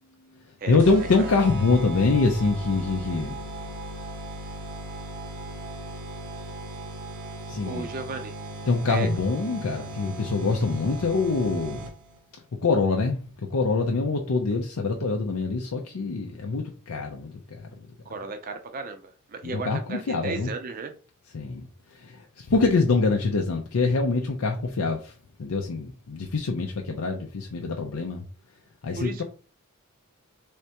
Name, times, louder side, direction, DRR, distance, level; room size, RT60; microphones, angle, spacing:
voice 1, 0.3-3.5 7.5-7.9 8.7-11.9 12.6-17.9 19.4-20.5 21.3-28.2 28.8-29.2, left 3 dB, 80° left, 0.6 m, -25 dB
sound 1, 0.8-12.2, right 1 dB, 80° right, 1.0 m, -37 dB
voice 2, 7.6-8.3 8.9-9.1 18.1-20.9 29.0-29.2, right 3 dB, 40° right, 0.5 m, -34 dB
3.6 x 3.3 x 2.8 m
head